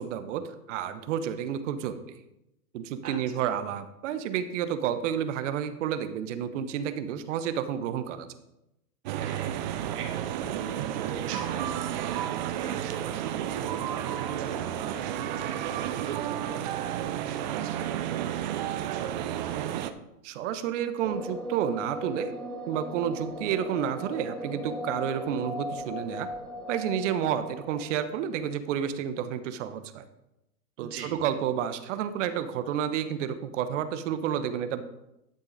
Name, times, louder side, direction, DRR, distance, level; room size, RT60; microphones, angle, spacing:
voice 1, 0.0-2.2 2.7-8.3 20.2-22.3 22.7-26.3 26.7-30.0 30.8-34.8, right 9 dB, 50° right, 11 dB, 1.0 m, -30 dB
voice 2, 3.0-3.4 9.2-19.6 30.8-31.3, right 5 dB, 70° right, -1 dB, 2.5 m, -44 dB
sound 1, 9.1-19.9, right 11 dB, 30° right, 0.4 m, -31 dB
sound 2, 21.0-28.6, equal, ahead, 0.8 m, -38 dB
11.5 x 6.5 x 4.0 m, 0.89 s
hypercardioid pair, 120°, 48 cm